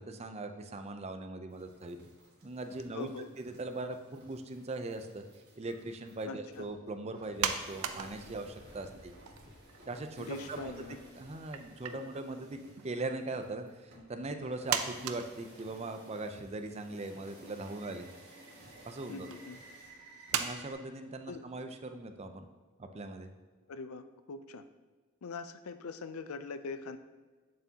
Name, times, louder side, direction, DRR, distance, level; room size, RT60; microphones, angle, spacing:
voice 1, 0.0-2.0 2.4-3.1 3.4-5.2 5.6-9.1 9.9-10.7 11.2-18.1 18.8-19.4 20.3-22.5 22.8-23.3, right 2 dB, 30° right, 7 dB, 0.5 m, -40 dB
sound 1, 1.5-20.7, right 1 dB, 50° right, 2.2 m, -56 dB
voice 2, 2.9-3.3 6.2-6.7 10.2-11.0 11.9-12.0 19.1-19.6 21.3-21.5 23.7-24.6 25.2-27.0, left 4 dB, 80° left, 11 dB, 0.5 m, -42 dB
sound 2, 7.4-8.7 9.0-10.3 10.5-10.6 11.5-12.0 12.7-13.2 14.0-14.1 14.7-16.1 16.7-16.8 17.2-17.7 18.5-18.7 19.3-19.4 20.3-20.5, right 8 dB, 85° right, 0.5 m, -36 dB
8.3 x 7.4 x 2.8 m, 1.4 s
head